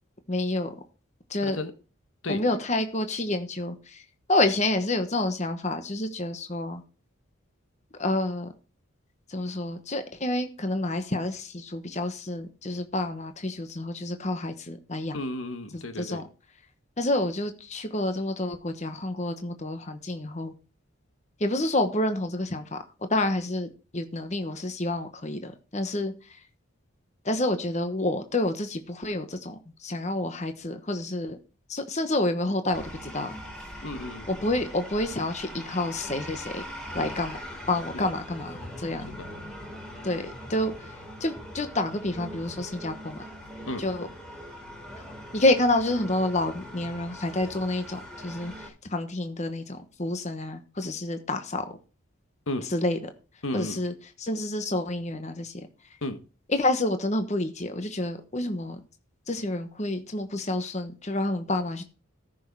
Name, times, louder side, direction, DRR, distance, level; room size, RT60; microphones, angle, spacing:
voice 1, 0.3-0.7 1.3-1.6 2.3-4.0 4.3-6.8 7.9-8.5 9.3-15.2 15.7-16.2 17.0-20.5 21.4-22.8 23.1-26.4 27.2-31.4 31.7-33.3 34.3-36.6 36.9-37.4 37.7-39.1 40.0-40.9 41.2-43.2 43.8-44.1 45.3-51.7 52.7-53.0 53.5-55.7 56.5-58.8 59.3-61.8, left 2 dB, 35° left, 1.1 m, -29 dB
voice 2, 15.1-16.2 33.8-34.3 37.9-38.1 39.2-39.3 43.7-43.8 52.5-52.6 53.4-53.8 56.0-56.2, left 1 dB, 70° left, 1.4 m, -33 dB
sound 1, 32.7-48.7, equal, 5° left, 4.6 m, -41 dB
14.0 x 6.4 x 4.7 m
head